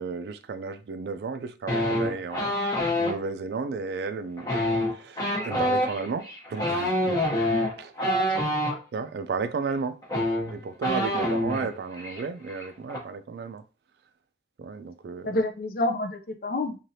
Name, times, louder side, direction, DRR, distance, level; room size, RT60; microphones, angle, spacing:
voice 1, 0.0-4.5 4.9-7.2 7.8-7.9 8.9-10.0 10.5-13.6 14.6-15.4, right 4 dB, 60° right, 0.3 m, -33 dB
sound 1, 1.7-3.1 4.4-8.8 9.7-9.8 10.0-11.7 12.0-12.2 12.5-13.0, equal, 20° left, 0.8 m, -26 dB
voice 2, 8.0-8.3 11.2-11.4 15.2-16.8, left 2 dB, 50° left, 0.5 m, -29 dB
3.1 x 2.5 x 2.7 m
head